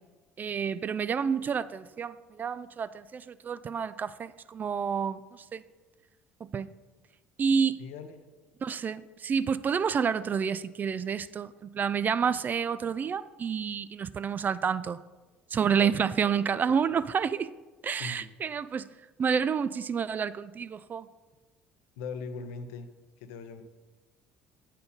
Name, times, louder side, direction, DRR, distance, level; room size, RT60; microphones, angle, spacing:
voice 1, 0.4-5.6 6.5-6.7 7.4-7.8 8.6-15.0 15.5-17.5 17.8-18.9 19.2-21.1, right 6 dB, 35° right, 15 dB, 0.3 m, -29 dB
voice 2, 7.8-8.3 15.7-16.8 17.9-18.3 22.0-22.9 23.2-23.6, left 5 dB, 65° left, 9 dB, 0.7 m, -41 dB
7.9 x 4.3 x 5.3 m, 1.2 s
hypercardioid pair, 60°, 6 cm